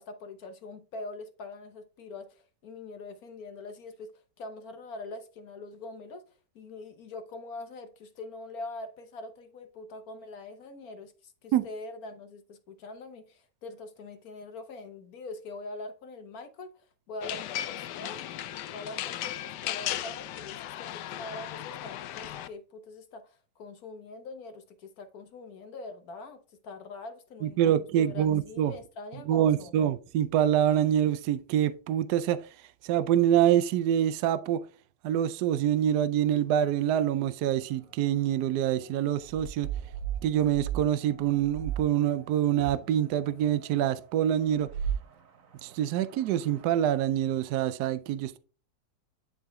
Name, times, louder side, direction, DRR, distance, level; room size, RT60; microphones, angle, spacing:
voice 1, 0.0-6.2 6.5-18.2 18.7-27.6 27.9-29.7, left 2 dB, 65° left, 1.5 m, -43 dB
sound 1, 17.2-22.5, left 12 dB, 90° left, 1.2 m, -36 dB
voice 2, 27.4-28.7 29.3-32.4 32.8-34.6 35.0-39.7 40.2-44.7 45.6-48.4, right 10 dB, 75° right, 1.1 m, -26 dB
sound 2, 37.6-46.8, right 9 dB, 55° right, 1.4 m, -39 dB
11.0 x 3.9 x 3.5 m
omnidirectional pair, 1.8 m